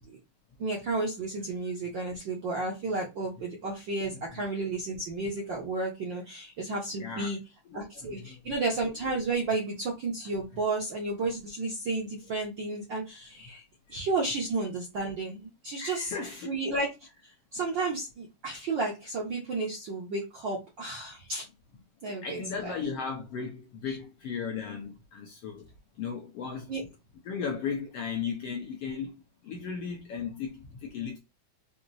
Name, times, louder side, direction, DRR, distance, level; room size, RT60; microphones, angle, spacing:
voice 1, 0.6-7.4 7.7-13.6 13.9-21.4 22.0-22.7 23.9-24.0 26.7-26.8, right 3 dB, 60° right, 1.2 m, -32 dB
voice 2, 7.0-7.3 8.0-8.4 15.8-16.6 22.1-25.7 26.0-26.7 27.3-29.1 29.4-31.2, left 6 dB, 70° left, 1.6 m, -36 dB
5.9 x 2.8 x 2.6 m
omnidirectional pair, 3.5 m